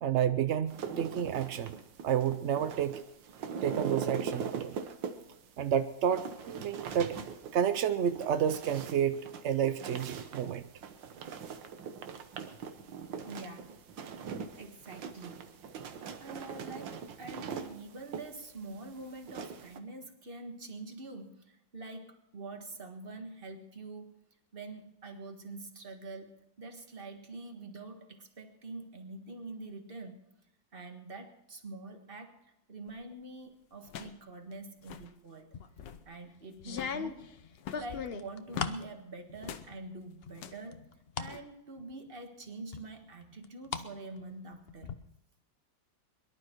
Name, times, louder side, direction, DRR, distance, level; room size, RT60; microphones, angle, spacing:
voice 1, 0.0-1.7 2.0-3.0 3.6-4.8 5.6-7.2 7.5-10.7, right 9 dB, 70° right, 0.6 m, -30 dB
sound 1, 0.7-19.8, right 6 dB, 85° right, 1.8 m, -41 dB
voice 2, 13.2-13.7 14.6-15.5 16.2-24.2 24.5-30.2 30.7-35.5 36.0-37.3 37.7-40.8 41.2-44.9, right 2 dB, 30° right, 1.7 m, -45 dB
sound 2, 32.9-33.1 33.8-34.3 34.5-34.6 34.8-35.1 35.6-36.1 36.7-37.0 37.6-38.8 39.4-39.7 40.3-40.7 41.2-41.4, left 9 dB, 75° left, 1.5 m, -44 dB
sound 3, 35.5-36.0 36.6-38.9 39.3-39.9 40.2-41.3 41.8-41.9 42.7-43.9 44.2-44.9, left 6 dB, 55° left, 0.7 m, -38 dB
23.0 x 12.0 x 4.5 m
omnidirectional pair, 2.0 m